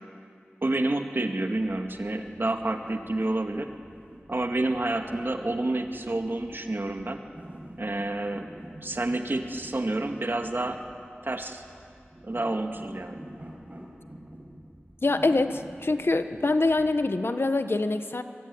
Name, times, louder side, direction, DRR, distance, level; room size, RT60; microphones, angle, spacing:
voice 1, 0.6-3.7 4.3-7.2 7.8-8.5 8.8-10.8 11.2-11.6 12.2-13.2, right 2 dB, 55° right, 4 dB, 2.2 m, -29 dB
sound 1, 1.6-17.1, right 1 dB, 40° right, 5.7 m, -48 dB
voice 2, 15.0-18.2, left 2 dB, 65° left, 9 dB, 1.3 m, -25 dB
24.5 x 22.5 x 9.6 m, 2.3 s
wide cardioid pair, 50°, 4 cm